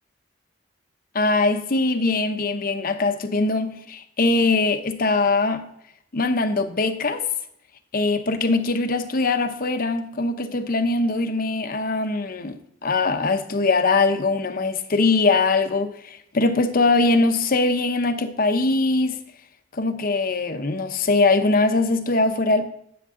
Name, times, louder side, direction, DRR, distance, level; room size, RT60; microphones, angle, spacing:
voice 1, 1.1-5.7 6.1-7.2 7.9-19.2 19.7-22.6, left 3 dB, 50° left, 0.8 m, -22 dB
10.5 x 7.3 x 3.7 m
head